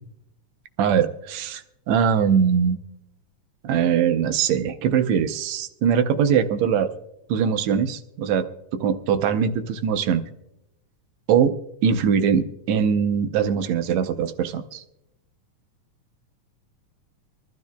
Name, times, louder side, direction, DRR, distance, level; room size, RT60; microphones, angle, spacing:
voice 1, 0.8-2.8 3.6-6.9 7.3-8.5 8.7-10.2 11.3-11.5 11.8-14.8, right 7 dB, 75° right, 7 dB, 1.9 m, -21 dB
24.5 x 12.5 x 2.2 m, 0.85 s
omnidirectional pair, 3.4 m